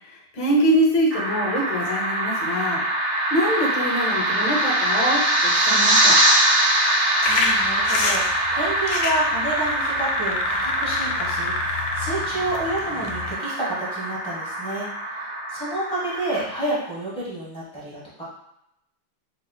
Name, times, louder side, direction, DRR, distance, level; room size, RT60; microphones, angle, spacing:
voice 1, 0.1-2.8 3.3-6.2, equal, 65° left, -1 dB, 1.3 m, -24 dB
sound 1, 1.1-16.4, right 1 dB, 80° right, 2.1 m, -23 dB
sound 2, 7.2-13.3, left 4 dB, 85° left, 1.5 m, -28 dB
voice 2, 7.3-18.2, right 2 dB, 10° left, -9 dB, 0.3 m, -30 dB
4.2 x 2.8 x 2.3 m, 0.80 s
omnidirectional pair, 2.4 m